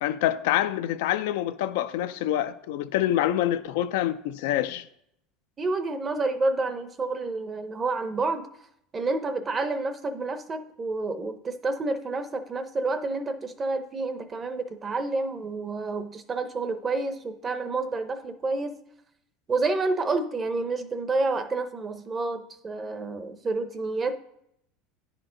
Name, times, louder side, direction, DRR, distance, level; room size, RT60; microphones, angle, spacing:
voice 1, 0.0-4.9, left 12 dB, 80° left, 0.4 m, -26 dB
voice 2, 5.6-8.5 8.9-18.7 19.5-24.1, right 3 dB, 25° right, 0.7 m, -29 dB
9.9 x 4.5 x 3.8 m
supercardioid pair, 125°, 0 cm